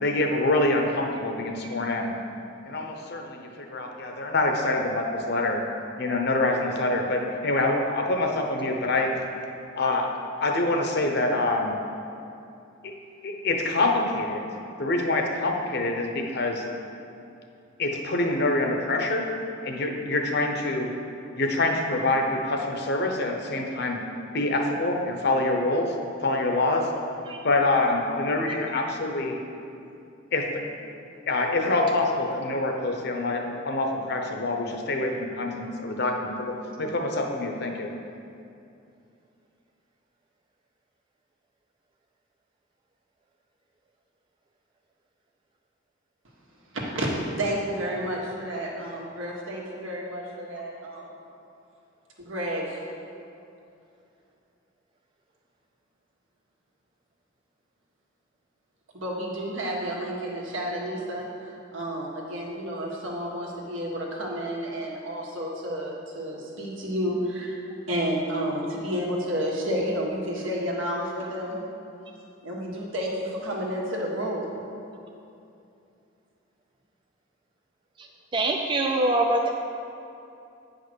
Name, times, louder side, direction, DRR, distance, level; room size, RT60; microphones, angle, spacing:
voice 1, 0.0-2.1 2.6-5.6 6.0-9.2 9.8-10.1 10.4-11.7 12.8-12.9 13.2-14.4 14.8-16.6 17.8-19.3 19.6-21.0 21.4-24.0 24.3-25.9 26.2-26.9 27.4-29.4 30.3-30.6 31.3-37.9, left 2 dB, 55° left, 3 dB, 0.9 m, -26 dB
voice 2, 46.7-47.1 47.4-51.1 52.2-52.8 58.9-67.6 67.9-71.6 72.4-74.5, equal, 80° right, -3 dB, 1.7 m, -31 dB
voice 3, 78.3-79.5, right 2 dB, 25° right, 1 dB, 0.4 m, -24 dB
8.9 x 5.2 x 6.2 m, 2.7 s
head